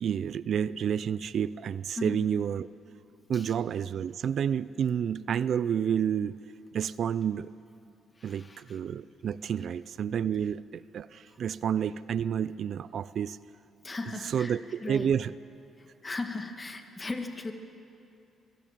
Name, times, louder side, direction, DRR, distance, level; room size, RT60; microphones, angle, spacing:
voice 1, 0.0-2.7 3.3-6.4 6.7-7.5 8.2-13.4 14.3-15.3, right 8 dB, 60° right, 18 dB, 0.4 m, -30 dB
voice 2, 8.2-8.8 11.3-11.4 13.8-15.1 15.8-17.5, left 3 dB, 25° left, 6 dB, 1.7 m, -38 dB
24.5 x 16.5 x 7.4 m, 2.6 s
cardioid pair, 90°, 0 cm